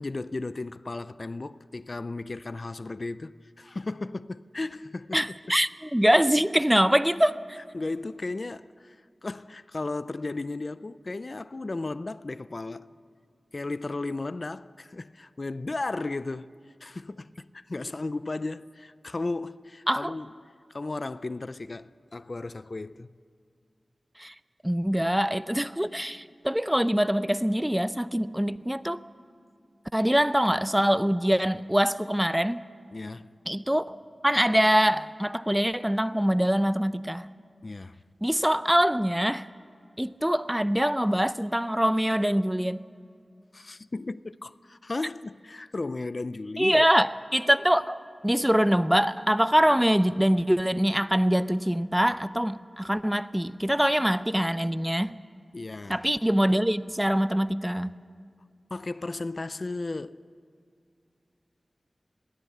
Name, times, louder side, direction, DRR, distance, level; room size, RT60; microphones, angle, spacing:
voice 1, 0.0-5.2 7.7-12.9 13.5-16.5 16.8-23.1 32.9-33.3 37.6-38.0 43.5-46.8 55.5-56.1 58.7-60.2, left 3 dB, 50° left, 0.4 m, -35 dB
voice 2, 5.1-7.6 19.9-20.1 24.2-24.3 24.6-29.0 29.9-32.6 33.5-34.0 34.2-37.3 38.2-39.5 40.0-42.8 46.6-55.2 55.9-58.0, equal, 5° right, 0.5 m, -24 dB
21.5 x 16.0 x 8.5 m
wide cardioid pair, 85°, 0 cm